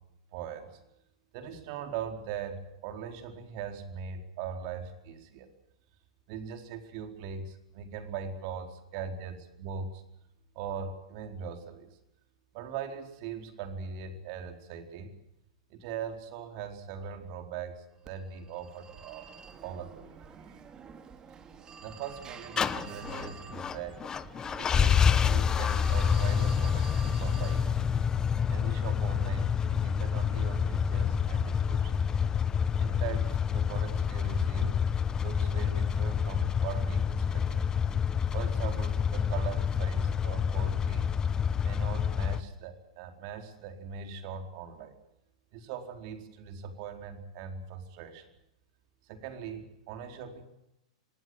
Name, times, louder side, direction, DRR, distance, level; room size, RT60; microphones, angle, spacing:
voice 1, 0.3-0.7 1.3-5.5 6.3-10.0 10.5-11.9 12.5-15.1 15.7-19.3 19.6-20.1 21.8-24.0 24.6-27.7 28.5-32.0 32.8-34.8 35.2-37.7 38.3-41.1 41.6-45.0 45.5-48.3 49.1-50.4, right 6 dB, 50° right, 6 dB, 4.4 m, -40 dB
Telephone, 18.1-27.8, right 6 dB, 25° right, 2.6 m, -47 dB
sound 1, 22.6-42.4, left 7 dB, 20° left, 1.1 m, -28 dB
26.0 x 18.5 x 7.9 m, 0.84 s
hypercardioid pair, 120°, 3 cm